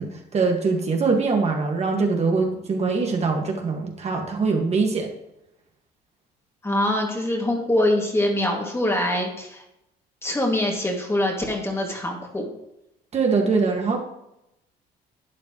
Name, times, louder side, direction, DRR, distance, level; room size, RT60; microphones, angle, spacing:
voice 1, 0.0-5.1 13.1-14.0, right 4 dB, 40° right, 1 dB, 1.8 m, -23 dB
voice 2, 6.6-9.6 10.2-12.5, left 1 dB, 15° left, 1 dB, 2.3 m, -24 dB
11.5 x 8.5 x 3.1 m, 0.85 s
cardioid pair, 110°, 17 cm